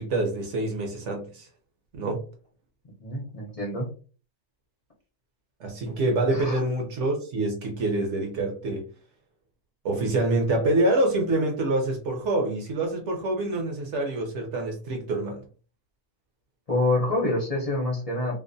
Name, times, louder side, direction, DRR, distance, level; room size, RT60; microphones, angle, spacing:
voice 1, 0.0-1.5 1.9-2.2 5.6-8.9 9.8-15.4, right 2 dB, 65° right, 0.8 m, -26 dB
voice 2, 3.0-3.9 6.3-6.6 16.7-18.4, left 2 dB, 55° left, 0.4 m, -26 dB
2.5 x 2.0 x 2.5 m
omnidirectional pair, 1.6 m